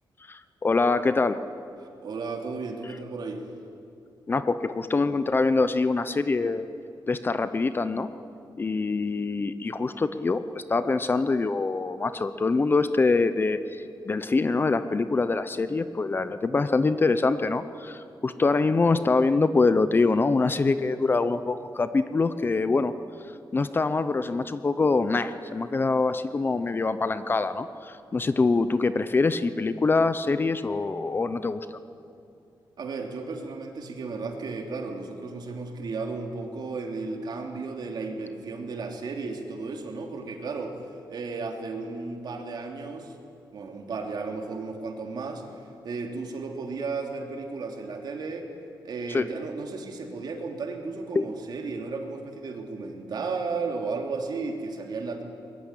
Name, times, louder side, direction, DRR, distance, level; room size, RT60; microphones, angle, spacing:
voice 1, 0.3-1.4 4.3-6.6 7.1-8.1 8.6-10.4 10.7-22.9 23.5-31.8 49.1-49.3 51.1-51.3, left 3 dB, 25° left, 12 dB, 0.7 m, -24 dB
voice 2, 2.0-3.4 32.8-40.7 41.1-43.1 43.5-45.4 45.8-48.5 48.8-55.2, right 4 dB, 55° right, 2 dB, 3.1 m, -34 dB
23.5 x 21.0 x 10.0 m, 2.6 s
wide cardioid pair, 160°, 8 cm